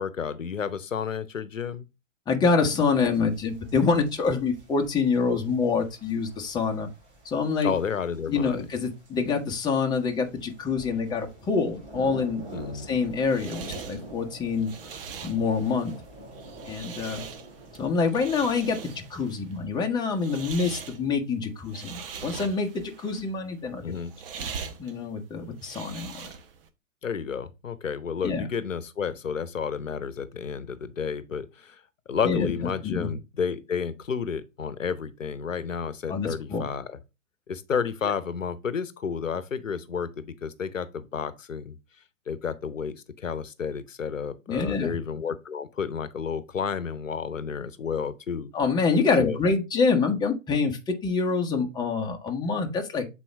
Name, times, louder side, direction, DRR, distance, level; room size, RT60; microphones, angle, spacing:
voice 1, 0.0-1.9 7.6-8.6 12.5-12.9 23.8-24.1 27.0-31.8 32.1-37.0 37.5-41.8 42.3-48.5 49.2-49.4, left 6 dB, 75° left, 0.9 m, -31 dB
voice 2, 2.3-6.9 7.2-7.7 8.3-12.4 12.7-14.7 15.2-15.9 16.7-17.2 17.8-23.8 24.4-24.5 24.8-26.3 28.2-28.5 32.2-32.5 32.8-33.1 36.1-36.7 44.5-45.0 48.5-53.1, left 4 dB, 10° left, 1.1 m, -26 dB
sound 1, 2.7-19.1, right 1 dB, 30° right, 3.7 m, -46 dB
sound 2, 12.8-26.7, right 6 dB, 45° right, 1.1 m, -42 dB
7.5 x 4.3 x 3.4 m
figure-of-eight pair, 115°, 39 cm